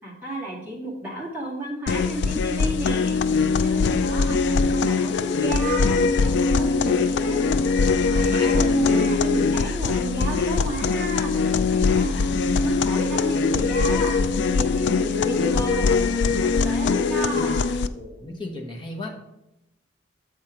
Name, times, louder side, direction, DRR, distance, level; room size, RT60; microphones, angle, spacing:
voice 1, 0.0-3.2 3.6-7.4 8.0-17.7, right 1 dB, 10° right, -6 dB, 2.1 m, -32 dB
sound 1, 1.9-17.9, left 4 dB, 60° left, 0.3 m, -22 dB
voice 2, 8.1-9.2 17.9-19.1, left 2 dB, 25° left, 0 dB, 1.0 m, -34 dB
7.4 x 4.4 x 5.1 m, 0.88 s
head